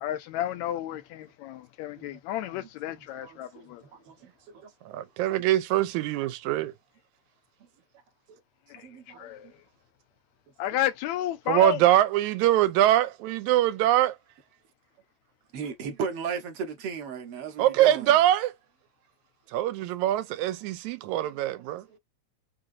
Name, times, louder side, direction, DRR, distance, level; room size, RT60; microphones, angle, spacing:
voice 1, 0.0-3.8 8.7-8.9 9.2-9.5 10.6-11.8, left 12 dB, 80° left, 1.9 m, -32 dB
voice 2, 2.0-3.7 4.1-4.2 4.5-4.7 8.3-8.4 8.8-9.3 15.5-18.1, right 6 dB, 70° right, 1.5 m, -37 dB
voice 3, 4.9-6.7 11.5-14.2 17.6-18.5 19.5-22.0, right 13 dB, 90° right, 2.0 m, -23 dB
4.9 x 2.8 x 2.5 m
omnidirectional pair, 3.3 m